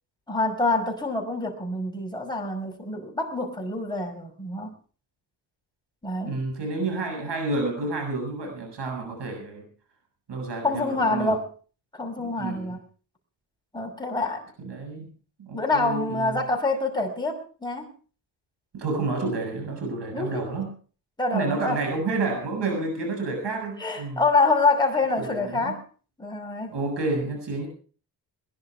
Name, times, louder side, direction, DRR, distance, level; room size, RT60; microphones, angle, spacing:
voice 1, 0.3-4.7 6.0-6.4 10.6-11.5 11.9-12.8 13.7-14.4 15.5-17.9 20.1-20.4 21.2-21.8 23.8-25.8 26.2-26.7, left 3 dB, 10° left, 0 dB, 5.4 m, -26 dB
voice 2, 6.2-9.7 10.3-11.3 12.2-12.7 14.6-15.1 15.4-16.4 18.7-20.7 21.3-24.2 25.2-25.7 26.7-27.7, right 3 dB, 65° right, 3 dB, 7.5 m, -30 dB
21.0 x 11.0 x 4.8 m, 0.39 s
cardioid pair, 95°, 44 cm